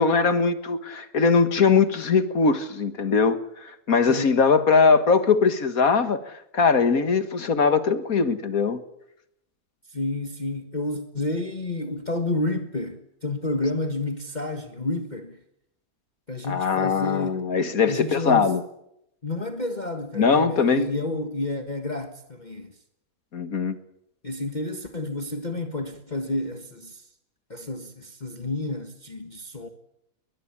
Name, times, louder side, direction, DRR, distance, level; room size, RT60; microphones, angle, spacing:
voice 1, 0.0-8.8 16.4-18.6 20.2-20.9 23.3-23.8, left 5 dB, 70° left, 2.1 m, -21 dB
voice 2, 9.9-15.4 16.3-17.4 17.9-18.5 19.2-22.7 24.2-27.0 27.5-29.7, left 2 dB, 30° left, 1.6 m, -30 dB
21.5 x 21.0 x 8.8 m
omnidirectional pair, 1.6 m